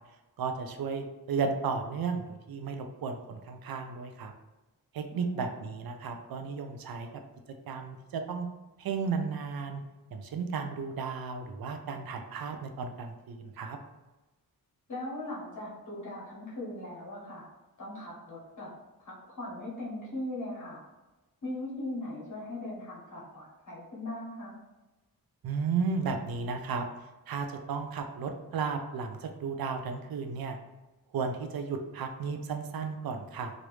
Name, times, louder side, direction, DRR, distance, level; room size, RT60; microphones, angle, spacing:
voice 1, 0.4-4.3 4.9-7.1 7.7-8.5 8.8-9.8 10.1-13.8 25.4-26.9 27.3-30.6 31.1-33.5, right 5 dB, 75° right, 5 dB, 0.5 m, -34 dB
voice 2, 5.1-5.6 14.9-17.5 17.8-18.7 19.0-20.8 21.4-24.5, left 1 dB, 55° left, -5 dB, 1.3 m, -39 dB
3.1 x 2.5 x 3.1 m, 1.1 s
wide cardioid pair, 115°, 36 cm